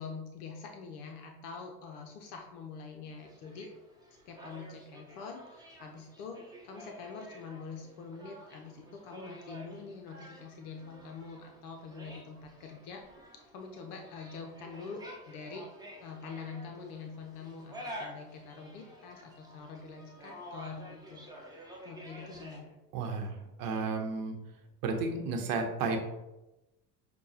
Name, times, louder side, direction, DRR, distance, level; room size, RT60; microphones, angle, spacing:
voice 1, 0.0-3.7 4.3-13.1 13.5-15.7 16.0-21.3 21.8-22.7, left 5 dB, 65° left, 3 dB, 0.7 m, -45 dB
sound 1, 3.1-22.6, equal, 10° right, 0.9 m, -50 dB
voice 2, 22.9-24.3 24.8-26.0, right 4 dB, 45° right, 4 dB, 0.9 m, -32 dB
6.3 x 2.3 x 2.8 m, 0.98 s
hypercardioid pair, 75°, 47 cm